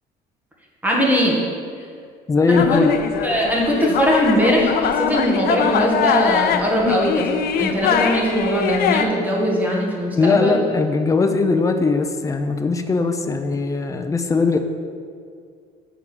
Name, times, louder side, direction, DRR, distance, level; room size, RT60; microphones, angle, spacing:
voice 1, 0.8-1.4 1.8-1.9 2.5-2.8 3.2-7.3 7.6-10.7, equal, 10° right, -3 dB, 1.8 m, -20 dB
voice 2, 2.3-2.9 10.1-14.6, left 4 dB, 20° left, 6 dB, 0.6 m, -19 dB
sound 1, 2.5-9.0, left 8 dB, 65° left, 0.6 m, -22 dB
7.4 x 4.8 x 7.1 m, 2.2 s
cardioid pair, 110°, 17 cm